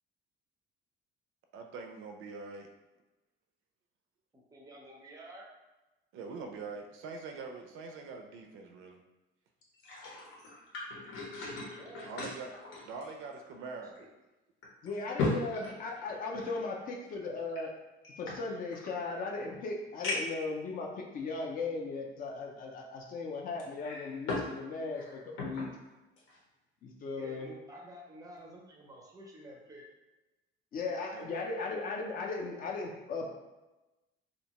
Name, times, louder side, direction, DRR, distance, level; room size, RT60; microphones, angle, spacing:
voice 1, 1.5-2.7 6.1-9.0 12.0-12.5 12.8-14.0 31.1-31.3, right 4 dB, 75° right, 4 dB, 0.4 m, -43 dB
voice 2, 4.3-5.5 11.8-12.1 14.0-14.1 27.1-29.9, right 1 dB, 15° right, -1 dB, 0.4 m, -50 dB
sound 1, 9.6-13.6 14.0-14.1 14.6-16.6 17.5-18.9 19.5-19.6 20.0-20.5 21.2-21.3 23.6-24.5 24.9-25.7 26.2-26.4, left 2 dB, 85° left, 0.8 m, -38 dB
voice 3, 14.8-17.7 18.2-25.7 26.8-27.5 30.7-33.3, left 3 dB, 40° left, 1 dB, 0.4 m, -37 dB
2.6 x 2.1 x 2.8 m, 1.1 s
cardioid pair, 155°, 21 cm